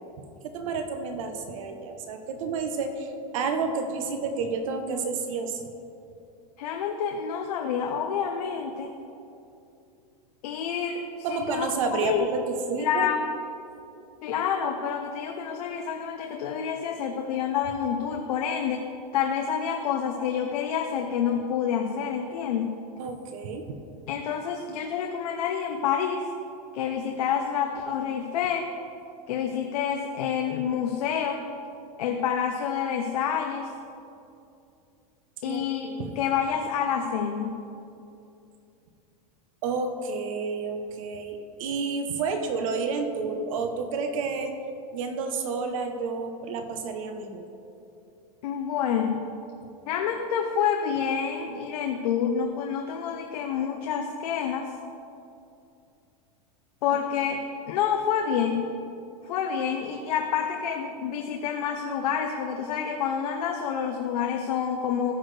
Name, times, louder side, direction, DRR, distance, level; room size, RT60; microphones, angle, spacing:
voice 1, 0.4-5.7 11.2-13.1 23.0-23.6 35.4-36.2 39.6-44.5 44.9-47.4, right 4 dB, 55° right, 6 dB, 1.0 m, -30 dB
voice 2, 6.6-8.9 10.4-11.7 12.0-12.3 12.8-13.2 14.2-18.9 19.1-22.7 24.1-26.3 26.7-28.7 29.3-31.4 32.0-33.7 35.4-35.9 36.2-37.6 42.2-42.5 48.4-49.2 49.9-54.7 56.8-57.4 57.7-58.7 59.3-65.1, left 7 dB, 70° left, 3 dB, 0.7 m, -28 dB
14.5 x 6.1 x 3.3 m, 2.6 s
supercardioid pair, 175°, 20 cm